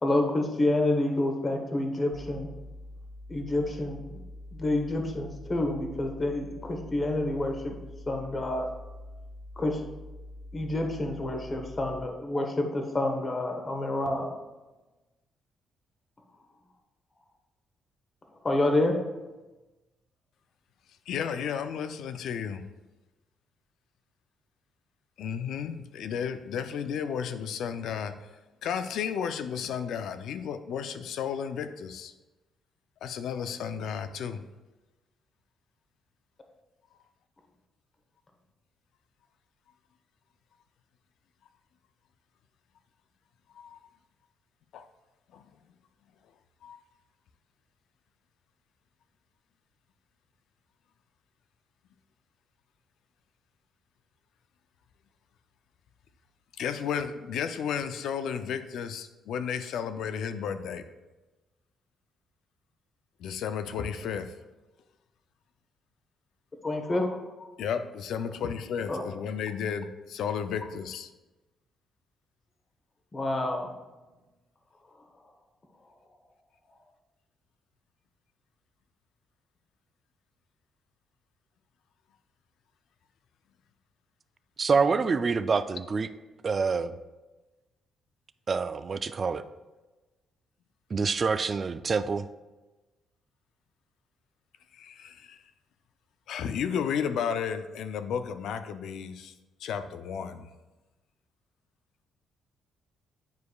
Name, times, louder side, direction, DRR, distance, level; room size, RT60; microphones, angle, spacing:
voice 1, 0.0-2.5 3.3-4.2 4.5-7.8 8.1-8.7 9.6-9.8 10.5-14.4 18.4-19.0 66.6-67.5 68.9-69.0 73.1-73.7, left 2 dB, 30° left, 4 dB, 1.0 m, -28 dB
sound 1, 2.1-12.1, left 1 dB, 5° left, 0.6 m, -45 dB
voice 2, 21.1-22.7 25.2-28.2 28.6-32.1 33.0-34.4 43.6-43.8 44.7-44.9 45.3-45.5 46.6-46.8 56.6-60.8 63.2-64.3 67.6-71.1 94.7-95.4 96.3-99.3 99.6-100.5, left 7 dB, 75° left, 10 dB, 0.4 m, -33 dB
voice 3, 84.6-86.1 86.4-87.0 88.5-89.4 90.9-92.3, right 5 dB, 40° right, 12 dB, 0.3 m, -26 dB
9.2 x 4.8 x 2.3 m, 1.1 s
cardioid pair, 90°, 0 cm